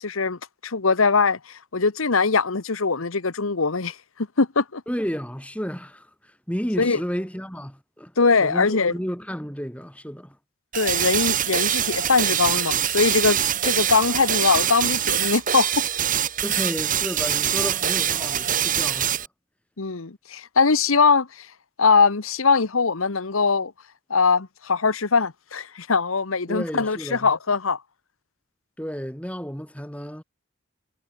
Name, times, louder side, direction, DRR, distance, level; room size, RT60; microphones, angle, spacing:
voice 1, 0.0-4.0 4.4-4.8 6.8-7.0 8.2-8.9 10.7-15.8 19.8-21.5 21.8-23.7 24.1-27.8, left 4 dB, 80° left, 1.2 m, -21 dB
voice 2, 4.9-8.1 8.4-10.4 16.4-19.3 26.5-27.3 28.8-30.2, equal, 5° left, 7.4 m, -32 dB
sound 1, 10.7-19.3, right 10 dB, 40° right, 2.1 m, -24 dB
head